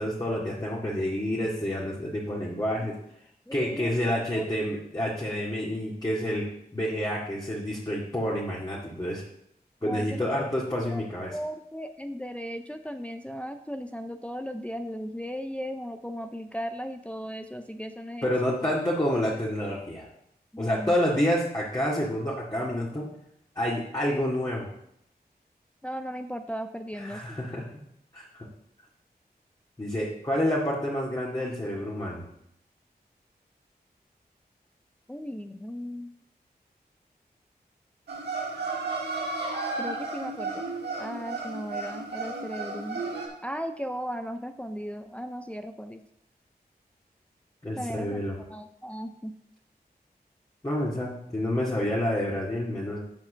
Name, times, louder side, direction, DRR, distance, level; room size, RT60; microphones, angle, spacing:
voice 1, 0.0-2.9 3.5-6.4 6.7-9.2 9.8-11.4 18.2-20.1 20.6-23.1 23.6-24.7 27.0-27.7 28.1-28.5 29.8-32.3 47.6-48.4 50.6-53.0, equal, 25° left, -6 dB, 2.2 m, -28 dB
voice 2, 3.5-3.9 4.3-4.4 9.8-10.2 10.9-11.0 11.3-18.3 20.5-20.9 25.8-27.4 35.1-36.1 39.8-40.6 41.0-43.0 43.4-46.0 47.8-49.3, equal, 10° left, 7 dB, 0.5 m, -36 dB
sound 1, 38.1-43.3, right 3 dB, 90° right, 1.7 m, -33 dB
7.5 x 4.8 x 6.3 m, 0.76 s
cardioid pair, 45°, 17 cm